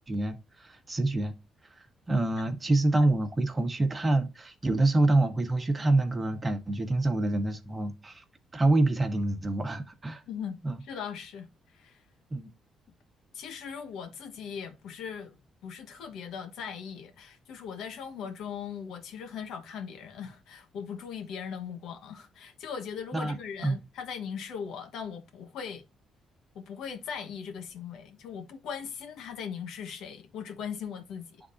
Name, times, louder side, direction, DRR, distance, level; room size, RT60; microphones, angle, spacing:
voice 1, 0.1-1.3 1.7-8.2 8.5-10.2 10.6-10.8 12.3-12.5 23.1-23.4 23.6-23.8, right 2 dB, 25° right, 1.3 m, -26 dB
voice 2, 10.3-12.0 13.3-15.4 15.6-25.8 26.5-31.4, left 7 dB, 80° left, 1.1 m, -39 dB
10.0 x 3.7 x 2.6 m
cardioid pair, 90°, 0 cm